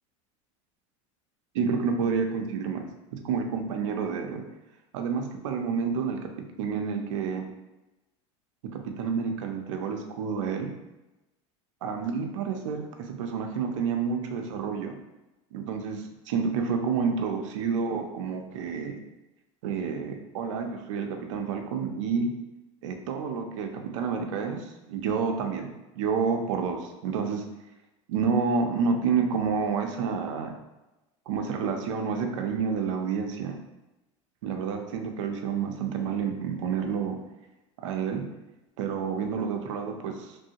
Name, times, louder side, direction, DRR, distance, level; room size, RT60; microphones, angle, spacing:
voice 1, 1.5-2.9 3.1-4.4 4.9-6.2 6.6-7.5 8.7-10.7 11.8-15.0 15.5-19.0 19.6-22.3 22.8-27.4 28.1-30.5 31.3-33.6 34.4-37.2 37.8-38.2 38.8-40.4, right 5 dB, 85° right, 4 dB, 0.5 m, -29 dB
3.1 x 2.6 x 2.7 m, 1.0 s
supercardioid pair, 110°, 16 cm